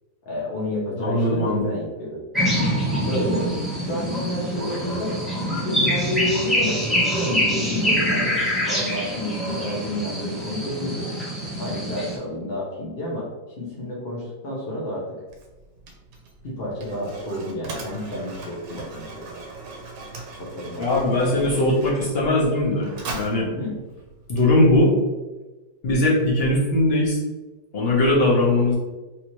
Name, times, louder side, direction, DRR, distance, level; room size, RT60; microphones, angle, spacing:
voice 1, 0.2-2.2 3.1-3.5 3.8-5.2 5.5-8.4 8.7-11.1 11.6-13.3 13.6-15.2 16.4-19.4 20.4-21.3 23.6-23.8, left 1 dB, 60° left, -6 dB, 0.6 m, -30 dB
voice 2, 1.0-1.7 20.8-22.9 23.1-23.5 24.3-24.9 25.8-27.2 27.7-28.8, left 1 dB, 40° left, -5 dB, 1.0 m, -20 dB
sound 1, 2.3-12.2, equal, ahead, 0.4 m, -25 dB
Mechanisms, 15.3-25.0, right 3 dB, 75° right, 1.2 m, -39 dB
3.4 x 2.8 x 3.0 m, 1.2 s
omnidirectional pair, 2.0 m